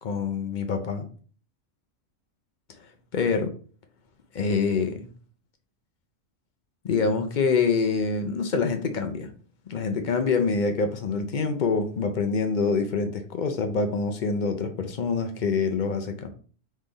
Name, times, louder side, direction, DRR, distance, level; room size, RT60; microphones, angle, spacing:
voice 1, 0.0-1.1 2.8-3.5 4.3-5.1 6.8-9.3 9.7-16.3, left 4 dB, 50° left, 0.6 m, -26 dB
3.7 x 3.1 x 3.9 m
omnidirectional pair, 1.4 m